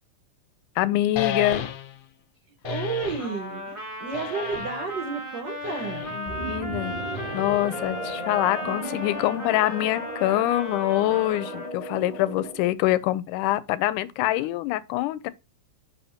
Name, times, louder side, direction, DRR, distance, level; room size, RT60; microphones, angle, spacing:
voice 1, 0.8-1.6 6.1-7.0 7.3-15.3, left 15 dB, 85° left, 2.1 m, -25 dB
sound 1, 1.2-2.1 2.6-3.3 4.1-4.9 5.6-6.3 7.1-7.9, left 6 dB, 70° left, 1.6 m, -33 dB
voice 2, 2.6-6.2 14.3-14.5, right 5 dB, 90° right, 0.9 m, -32 dB
Trumpet, 3.2-11.7, left 1 dB, 25° right, 0.6 m, -36 dB
sound 2, 6.3-12.7, right 1 dB, 30° left, 0.7 m, -36 dB
6.8 x 2.8 x 5.6 m
omnidirectional pair, 3.6 m